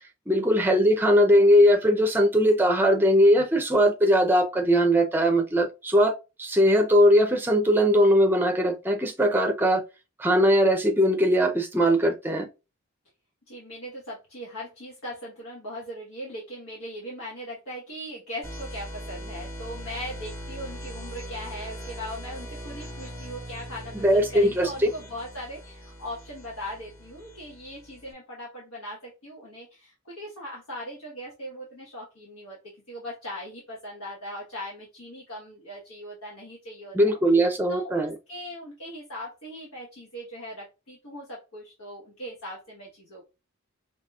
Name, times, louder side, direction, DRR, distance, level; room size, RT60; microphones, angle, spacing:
voice 1, 0.3-9.8 10.2-12.5 24.0-24.9 36.9-38.1, equal, 10° right, 0.5 m, -20 dB
voice 2, 13.5-32.6 32.9-43.2, equal, 85° left, 1.3 m, -39 dB
sound 1, 18.4-28.1, equal, 10° left, 1.1 m, -40 dB
5.0 x 2.9 x 2.4 m
head